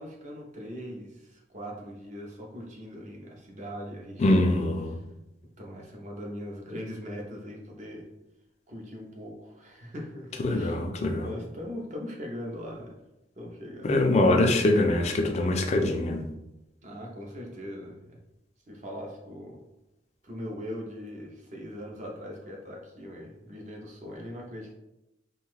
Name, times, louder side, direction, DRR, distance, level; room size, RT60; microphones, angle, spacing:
voice 1, 0.0-4.5 5.6-8.1 8.7-10.8 11.2-13.0 13.4-13.9 16.8-18.2 18.7-19.6 20.2-24.7, equal, 40° right, -1 dB, 0.6 m, -40 dB
voice 2, 4.2-5.0 10.4-11.3 13.8-16.3, left 2 dB, 35° left, 4 dB, 0.3 m, -23 dB
2.6 x 2.3 x 3.2 m, 0.93 s
head